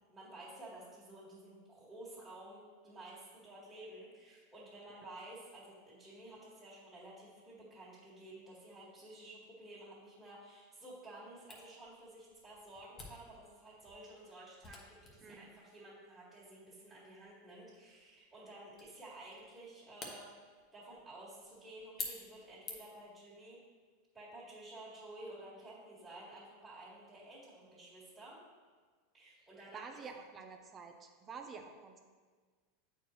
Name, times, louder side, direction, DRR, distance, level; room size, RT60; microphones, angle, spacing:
voice 1, 0.0-23.6 24.1-28.4 29.1-29.8, right 1 dB, 10° right, -11 dB, 1.9 m, -52 dB
Camera, 11.5-23.1, left 3 dB, 30° left, 1.1 m, -52 dB
voice 2, 29.7-32.0, right 5 dB, 25° right, 4 dB, 0.7 m, -49 dB
8.3 x 4.5 x 3.1 m, 1.5 s
supercardioid pair, 125°, 0 cm